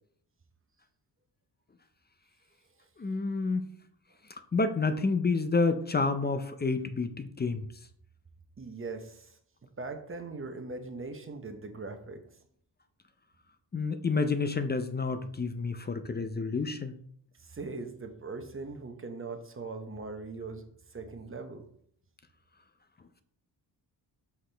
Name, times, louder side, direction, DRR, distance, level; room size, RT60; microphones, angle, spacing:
voice 1, 3.0-3.7 4.5-7.7 13.7-17.0, left 4 dB, 25° left, 9 dB, 0.4 m, -29 dB
voice 2, 8.6-9.4 9.8-12.3 17.4-21.7, right 3 dB, 30° right, 7 dB, 0.8 m, -40 dB
5.8 x 4.9 x 3.4 m, 0.63 s
wide cardioid pair, 110°, 42 cm